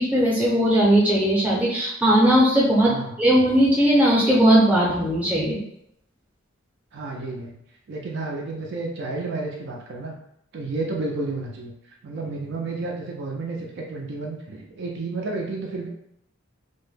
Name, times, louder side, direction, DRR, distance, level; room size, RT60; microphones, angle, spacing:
voice 1, 0.0-5.6, right 1 dB, 5° right, -6 dB, 0.6 m, -18 dB
voice 2, 6.9-7.5 7.9-10.2 10.5-11.7 12.0-15.9, right 3 dB, 55° right, -1 dB, 0.4 m, -31 dB
2.1 x 2.0 x 3.1 m, 0.76 s
head